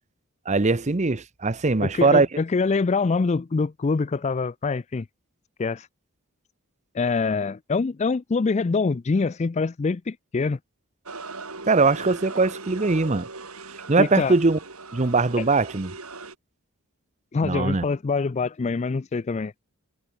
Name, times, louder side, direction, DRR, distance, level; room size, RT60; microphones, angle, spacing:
voice 1, 0.5-2.3 11.7-13.3 13.9-14.6 14.9-15.9 17.4-17.9, right 3 dB, 30° right, 0.8 m, -21 dB
voice 2, 1.8-5.1 5.6-5.9 6.9-10.6 14.0-14.4 15.4-15.5 17.3-19.6, left 4 dB, 30° left, 0.4 m, -25 dB
sound 1, 11.1-16.4, right 3 dB, 75° right, 7.5 m, -39 dB
head